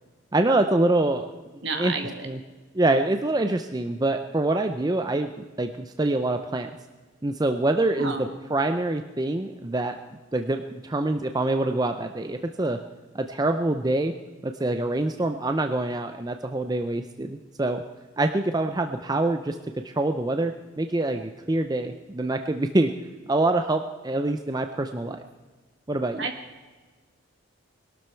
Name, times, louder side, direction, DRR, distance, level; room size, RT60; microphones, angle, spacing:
voice 1, 0.3-1.3 1.7-1.9 2.2-2.4 2.7-5.3 5.6-6.7 7.2-9.9 10.3-12.8 13.1-14.1 14.4-17.8 18.2-19.6 19.8-22.9 23.3-25.2 25.9-26.3, right 2 dB, 20° right, 6 dB, 0.5 m, -25 dB
voice 2, 1.6-2.3 8.0-8.3 26.2-26.3, right 4 dB, 60° right, 5 dB, 2.0 m, -30 dB
21.5 x 12.5 x 4.5 m, 1.3 s
head